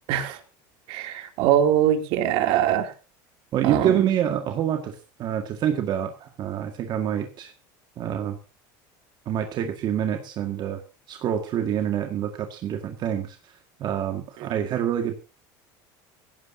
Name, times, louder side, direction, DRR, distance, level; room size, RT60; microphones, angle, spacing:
voice 1, 0.9-2.9 3.6-4.1, right 10 dB, 65° right, 6 dB, 2.9 m, -22 dB
voice 2, 3.5-7.5 8.0-8.4 9.3-10.8 11.1-13.4 13.8-15.1, right 9 dB, 45° right, 5 dB, 1.9 m, -26 dB
18.0 x 16.5 x 2.8 m, 0.30 s
supercardioid pair, 125°, 10 cm